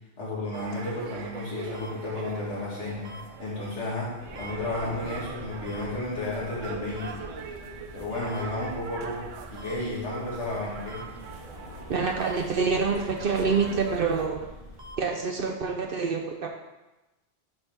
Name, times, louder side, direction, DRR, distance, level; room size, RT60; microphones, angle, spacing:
voice 1, 0.2-7.1 7.9-11.0, left 2 dB, 70° left, -6 dB, 2.2 m, -32 dB
sound 1, 0.5-0.6 1.7-1.9 3.0-3.2 4.4-4.5 5.7-5.8 7.0-7.1 8.3-8.4 9.6-9.7 10.9-11.0 12.2-12.3 13.5-13.6 14.8-15.0, left 1 dB, 40° right, 0.9 m, -45 dB
sound 2, 0.5-14.3, right 7 dB, 85° right, 1.0 m, -43 dB
sound 3, 4.2-14.9, left 1 dB, 30° left, 1.1 m, -45 dB
voice 2, 11.9-14.4 15.0-16.5, right 5 dB, 60° right, 2 dB, 0.7 m, -26 dB
8.5 x 4.2 x 3.5 m, 1.0 s
omnidirectional pair, 1.3 m